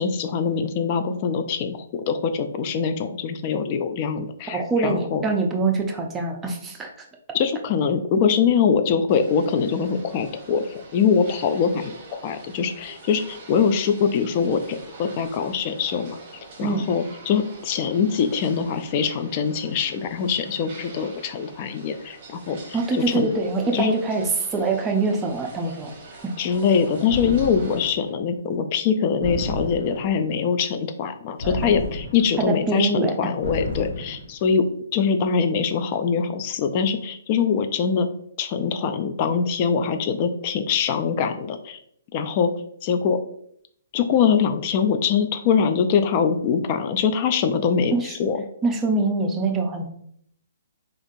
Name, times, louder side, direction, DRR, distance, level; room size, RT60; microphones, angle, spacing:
voice 1, 0.0-5.2 7.3-10.6 10.9-16.2 16.6-22.8 23.1-23.3 23.7-23.9 26.4-34.6 34.9-38.1 38.4-41.8 42.1-42.5 42.8-43.2 43.9-47.9 48.2-48.4, left 6 dB, 40° left, 8 dB, 0.3 m, -23 dB
voice 2, 4.5-6.9 16.6-16.9 22.7-25.9 26.2-26.3 31.4-31.5 32.4-33.2 47.9-48.2 48.6-49.9, right 3 dB, 15° right, 2 dB, 0.5 m, -24 dB
sound 1, 9.1-27.9, right 3 dB, 40° right, 0.9 m, -45 dB
sound 2, 27.1-28.0 29.2-30.2 31.4-32.4 33.4-34.3, left 2 dB, 70° left, 1.1 m, -31 dB
3.5 x 2.4 x 2.6 m, 0.68 s
hypercardioid pair, 135°, 0 cm